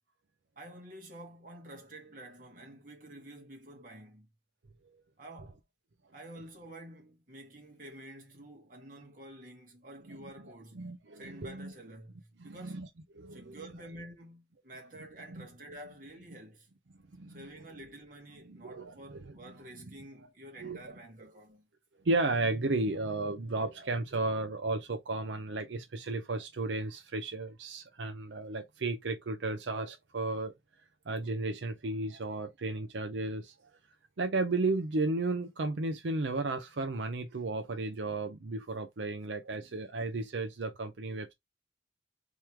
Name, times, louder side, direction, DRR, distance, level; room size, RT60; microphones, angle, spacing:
voice 1, 0.6-4.3 5.2-5.6 6.1-12.9 13.3-16.7 17.3-21.7 39.6-39.7, right 1 dB, 45° right, 1.8 m, -49 dB
voice 2, 10.0-11.7 12.4-12.9 13.1-13.9 15.3-15.5 16.2-16.3 17.1-17.6 18.3-19.7 20.6-21.0 22.0-30.5 31.1-33.5 34.2-41.3, right 2 dB, 80° right, 0.6 m, -34 dB
3.5 x 3.1 x 4.4 m
head